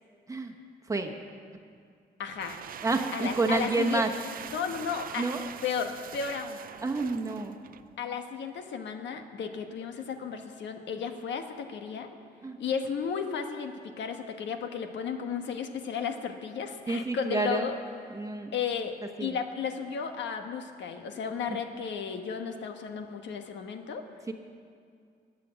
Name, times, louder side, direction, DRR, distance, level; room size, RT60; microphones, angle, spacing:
voice 1, 2.2-2.6 3.1-4.0 4.5-5.3 5.6-6.6 8.0-12.1 12.6-17.8 18.5-18.9 19.2-24.0, left 6 dB, 85° left, 6 dB, 1.3 m, -34 dB
sound 1, 2.2-7.9, right 9 dB, 50° right, 0.5 m, -43 dB
voice 2, 2.8-4.1 5.2-5.4 6.8-7.6 12.4-12.6 16.9-17.7 18.1-18.6 19.2-19.4 24.3-24.4, right 3 dB, 15° right, 4 dB, 1.1 m, -29 dB
20.0 x 8.5 x 7.5 m, 2.2 s
wide cardioid pair, 165°, 18 cm